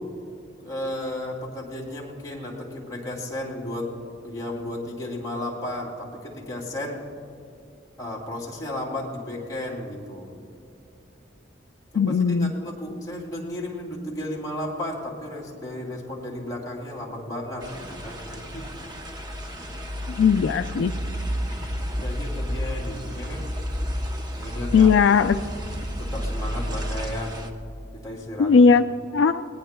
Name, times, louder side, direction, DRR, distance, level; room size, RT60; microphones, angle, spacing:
voice 1, 0.6-3.9 4.2-7.0 8.0-10.3 11.9-18.9 20.2-20.4 22.0-23.4 24.3-24.9 26.0-27.4 27.9-28.6, left 1 dB, 20° left, -4 dB, 2.7 m, -34 dB
voice 2, 11.9-12.5 20.1-20.9 24.7-25.4 28.4-28.8 29.1-29.5, left 5 dB, 75° left, 10 dB, 0.3 m, -18 dB
sound 1, 17.6-27.5, equal, 20° right, 0.7 m, -31 dB
20.5 x 18.0 x 2.2 m, 2.6 s
head